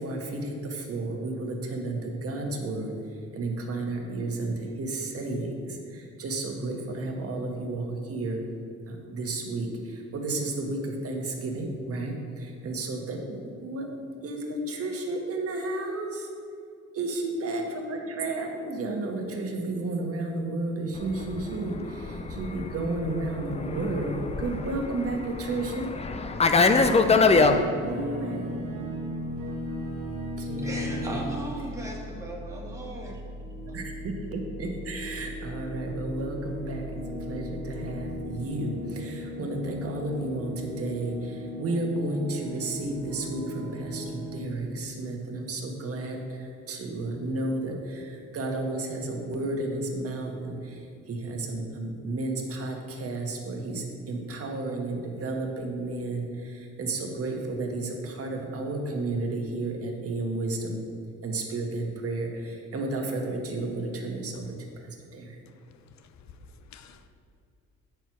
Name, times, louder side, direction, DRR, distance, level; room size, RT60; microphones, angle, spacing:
voice 1, 0.0-2.9 3.3-8.4 8.9-13.9 14.2-16.3 16.9-25.9 27.8-28.4 30.4-31.1 33.6-36.9 37.3-60.8 61.2-64.4 64.8-65.4, right 2 dB, 50° right, 1 dB, 1.3 m, -32 dB
Fixed-wing aircraft airplane, 21.1-27.6, left 4 dB, 20° left, 0.5 m, -24 dB
sound 1, 26.7-44.4, equal, 80° right, 1.3 m, -37 dB
voice 2, 30.6-33.2 33.7-33.8, equal, 10° right, -3 dB, 1.8 m, -37 dB
voice 3, 65.5-67.1, left 5 dB, 65° left, 9 dB, 0.7 m, -52 dB
7.9 x 4.6 x 6.0 m, 2.4 s
cardioid pair, 90°, 30 cm